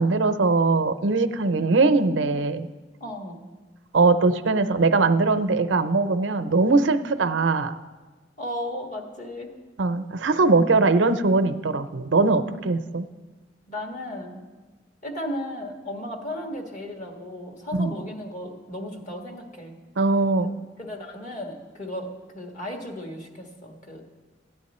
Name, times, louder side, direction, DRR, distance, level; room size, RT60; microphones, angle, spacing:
voice 1, 0.0-2.7 3.9-7.7 9.8-13.1 17.8-17.9 20.0-20.5, right 3 dB, 90° right, 10 dB, 0.6 m, -21 dB
voice 2, 3.0-3.4 8.4-9.5 13.7-14.4 15.0-19.7 20.4-24.0, left 1 dB, 45° left, 1 dB, 1.6 m, -35 dB
14.0 x 9.6 x 4.3 m, 1.3 s
head